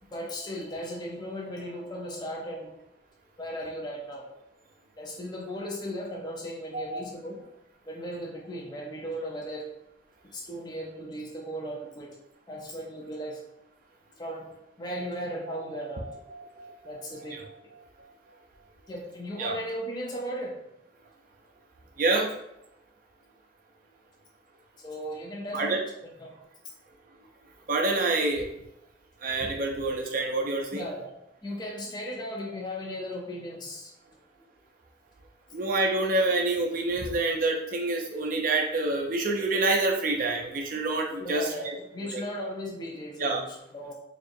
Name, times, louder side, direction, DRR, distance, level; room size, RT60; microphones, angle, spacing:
voice 1, 0.0-2.8 3.4-4.3 5.0-7.4 7.9-9.6 10.2-12.2 12.5-13.4 14.2-14.5 14.8-16.1 16.8-17.4 18.9-20.6 24.8-25.8 26.2-26.4 30.7-31.1 31.4-33.9 41.2-43.9, equal, 25° left, -2 dB, 0.5 m, -36 dB
sound 1, 14.8-18.8, right 2 dB, 10° right, 1.1 m, -45 dB
voice 2, 22.0-22.3 25.5-25.8 27.7-28.5 29.2-30.9 35.5-41.5 42.0-42.2 43.2-43.4, right 2 dB, 50° right, 1 dB, 0.4 m, -27 dB
4.3 x 2.4 x 2.6 m, 0.82 s
head